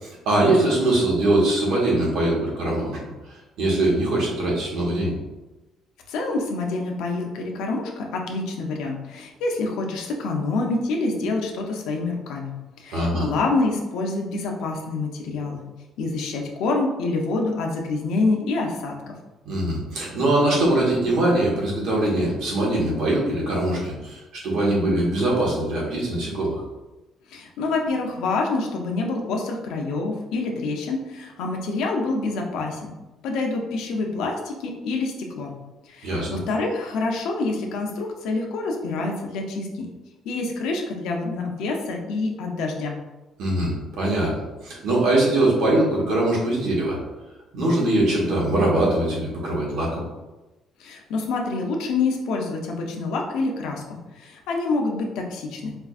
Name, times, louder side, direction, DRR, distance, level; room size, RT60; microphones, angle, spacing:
voice 1, 0.0-3.1 3.6-5.1 12.9-13.2 19.4-26.6 36.0-36.4 43.4-44.3 44.6-47.0 47.5-50.0, right 1 dB, 75° right, -4 dB, 1.1 m, -22 dB
voice 2, 6.1-15.6 16.0-19.1 27.3-32.9 33.2-35.5 35.8-39.9 40.2-43.0 50.8-55.7, left 3 dB, 80° left, 2 dB, 0.6 m, -27 dB
4.5 x 2.5 x 2.4 m, 1.1 s
cardioid pair, 175°, 0 cm